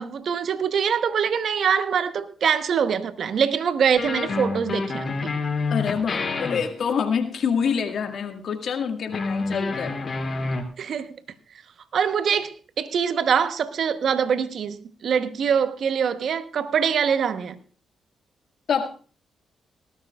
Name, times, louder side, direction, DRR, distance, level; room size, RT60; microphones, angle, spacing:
voice 1, 0.0-5.3 10.8-11.2 11.9-17.6, right 7 dB, 65° right, 1.0 m, -24 dB
sound 1, 4.0-7.3 9.1-10.6, left 3 dB, 45° left, 2.7 m, -28 dB
voice 2, 5.7-10.0 18.7-18.9, left 6 dB, 65° left, 1.8 m, -26 dB
19.0 x 13.0 x 2.4 m
hypercardioid pair, 45°, 0 cm